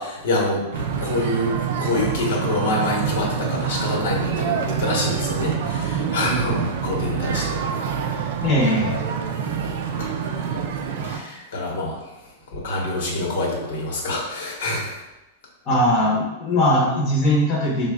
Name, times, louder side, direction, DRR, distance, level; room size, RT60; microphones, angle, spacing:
voice 1, 0.0-7.6 8.1-8.4 8.8-9.0 10.0-10.5 11.0-12.0 12.5-14.9, left 1 dB, 75° left, -2 dB, 1.0 m, -26 dB
sound 1, 0.7-11.2, right 7 dB, 65° right, 0.4 m, -26 dB
voice 2, 8.4-8.9 15.7-17.9, left 1 dB, 30° left, -4 dB, 0.8 m, -20 dB
3.8 x 2.2 x 3.4 m, 1.0 s
supercardioid pair, 150°, 0 cm